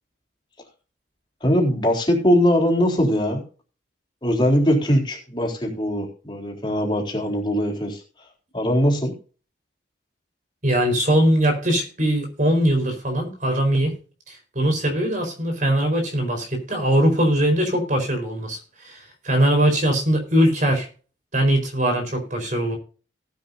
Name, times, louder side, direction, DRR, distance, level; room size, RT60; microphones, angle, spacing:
voice 1, 1.4-3.4 4.2-8.0 8.5-9.1, equal, 25° left, 0 dB, 4.0 m, -21 dB
voice 2, 10.6-13.9 14.3-20.9 21.3-22.8, right 1 dB, 45° right, 5 dB, 4.6 m, -21 dB
18.5 x 9.6 x 2.7 m, 0.37 s
head